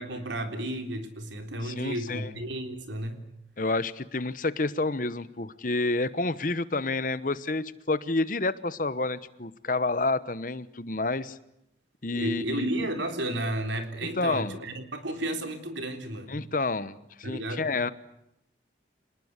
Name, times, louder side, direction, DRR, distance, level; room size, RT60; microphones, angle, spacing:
voice 1, 0.0-3.2 12.1-16.5 17.2-17.7, right 1 dB, 90° right, 6 dB, 3.7 m, -33 dB
voice 2, 1.6-2.3 3.6-11.4 12.0-12.7 14.2-14.6 16.3-17.9, left 3 dB, 45° left, 15 dB, 1.1 m, -29 dB
27.5 x 20.0 x 8.2 m, 0.81 s
head